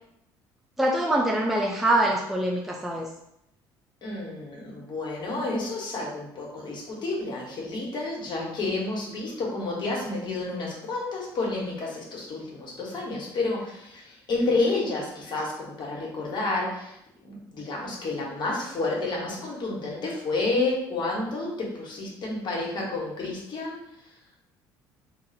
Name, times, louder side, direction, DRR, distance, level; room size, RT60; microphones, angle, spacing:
voice 1, 0.8-3.1, right 1 dB, 5° right, -2 dB, 0.5 m, -24 dB
voice 2, 4.0-17.0 17.2-23.8, left 2 dB, 50° left, -3 dB, 1.4 m, -30 dB
2.6 x 2.5 x 4.0 m, 0.79 s
supercardioid pair, 70°, 10 cm